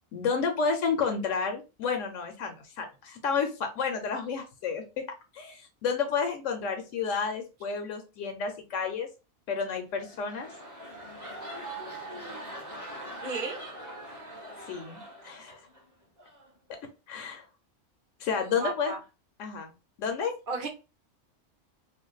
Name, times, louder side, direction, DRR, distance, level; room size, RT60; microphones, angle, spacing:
voice 1, 0.1-5.0 5.3-9.1 9.5-10.5 14.7-15.6 17.1-17.4 18.2-18.9 19.4-19.7 20.0-20.3, left 5 dB, 80° left, 1.0 m, -31 dB
sound 1, 9.8-15.8 16.2-16.5, right 1 dB, 20° right, 0.7 m, -42 dB
voice 2, 13.2-13.6 18.4-19.0 20.5-20.7, right 4 dB, 50° right, 0.8 m, -34 dB
2.6 x 2.2 x 3.8 m
omnidirectional pair, 1.3 m